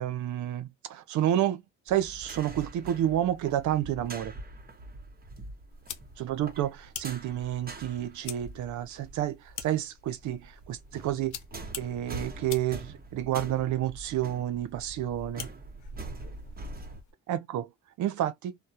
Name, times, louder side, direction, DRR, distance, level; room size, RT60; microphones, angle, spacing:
voice 1, 0.0-1.6 1.9-4.3 6.2-9.4 9.6-11.4 11.8-15.5 17.3-17.7 18.0-18.5, right 12 dB, 75° right, 0.6 m, -30 dB
sound 1, 1.9-9.7 10.0-17.0, right 2 dB, 30° right, 0.9 m, -44 dB
sound 2, 5.7-17.1, left 7 dB, 80° left, 0.7 m, -47 dB
2.3 x 2.0 x 2.7 m
cardioid pair, 90°, 30 cm